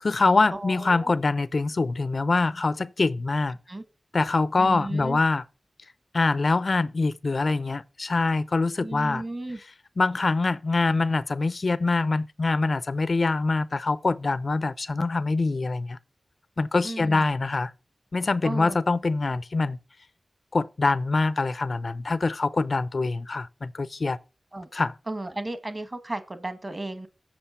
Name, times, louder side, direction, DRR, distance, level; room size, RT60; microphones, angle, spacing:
voice 1, 0.0-3.6 4.1-5.4 6.1-9.2 10.0-16.0 16.6-17.7 18.1-19.8 20.5-24.2 24.7-24.9, left 3 dB, 55° left, 0.5 m, -24 dB
voice 2, 0.5-1.1 3.7-3.8 4.6-5.2 8.8-9.6 16.8-17.2 18.4-18.8 24.5-24.7 25.1-27.1, right 2 dB, 30° right, 1.4 m, -34 dB
7.7 x 6.4 x 5.5 m
wide cardioid pair, 90°, 0 cm